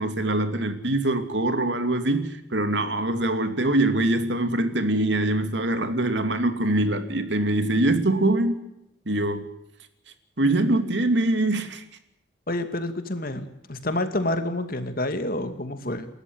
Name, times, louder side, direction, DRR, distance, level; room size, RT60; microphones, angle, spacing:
voice 1, 0.0-8.6 9.1-9.5 10.4-11.8, right 1 dB, 75° right, 2.8 m, -23 dB
voice 2, 12.5-16.1, left 1 dB, 50° left, 2.5 m, -28 dB
29.0 x 13.5 x 8.0 m
head